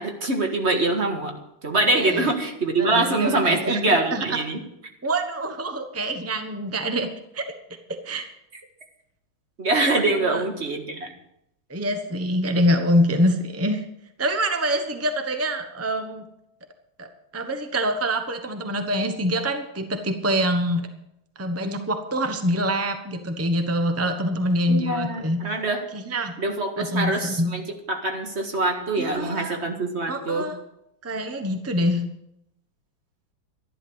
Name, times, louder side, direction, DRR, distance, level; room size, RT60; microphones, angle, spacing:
voice 1, 0.0-1.3 1.6-4.6 9.6-11.1 24.7-25.8 26.4-27.6 27.9-30.5, right 2 dB, 35° right, 3 dB, 1.8 m, -24 dB
voice 2, 1.9-2.3 2.8-4.2 5.0-7.1 7.3-7.5 8.0-8.2 9.9-10.4 11.7-13.8 14.2-16.2 17.0-17.1 17.3-20.9 21.4-25.4 25.9-26.3 26.8-27.5 29.0-29.6 30.1-30.6 31.0-32.0, equal, 15° right, 6 dB, 0.4 m, -25 dB
12.5 x 11.5 x 6.3 m, 0.81 s
omnidirectional pair, 2.3 m